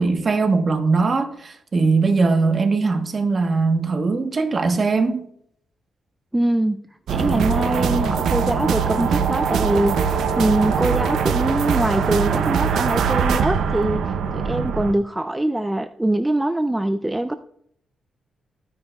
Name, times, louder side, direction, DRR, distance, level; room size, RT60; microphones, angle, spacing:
voice 1, 0.0-5.3, right 4 dB, 35° right, 1.0 m, -20 dB
voice 2, 6.3-6.8 7.1-17.4, right 1 dB, 10° right, 0.3 m, -23 dB
sound 1, 7.1-14.9, right 6 dB, 85° right, 0.6 m, -22 dB
14.5 x 9.4 x 2.3 m
wide cardioid pair, 145°, 0 cm